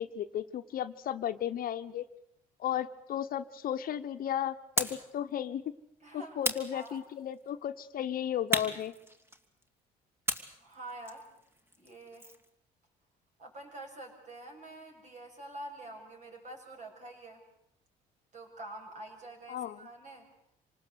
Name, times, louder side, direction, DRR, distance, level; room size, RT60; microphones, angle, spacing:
voice 1, 0.0-2.1 2.6-5.6 6.1-8.9 19.5-19.8, left 10 dB, 60° left, 10 dB, 1.1 m, -34 dB
sound 1, 4.8-5.1 6.4-7.3 8.5-9.6 10.3-12.5, equal, 15° right, 2.1 m, -35 dB
voice 2, 6.0-6.4 6.7-7.0 10.6-11.2 11.8-12.3 13.4-17.4 18.3-20.3, right 2 dB, 45° right, 2 dB, 7.4 m, -46 dB
26.5 x 19.0 x 8.2 m, 0.75 s
cardioid pair, 110°, 17 cm